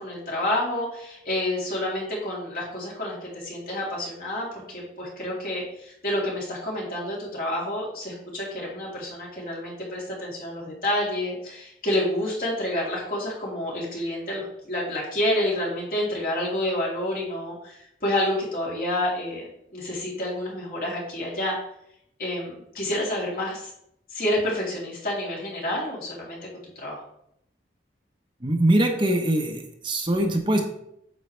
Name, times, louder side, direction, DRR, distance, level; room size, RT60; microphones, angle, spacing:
voice 1, 0.0-21.5 22.2-23.7 24.1-26.4 26.7-27.0, left 1 dB, 50° left, -5 dB, 3.3 m, -29 dB
voice 2, 28.4-30.6, right 1 dB, 25° right, 2 dB, 0.9 m, -22 dB
9.4 x 7.5 x 3.3 m, 0.76 s
head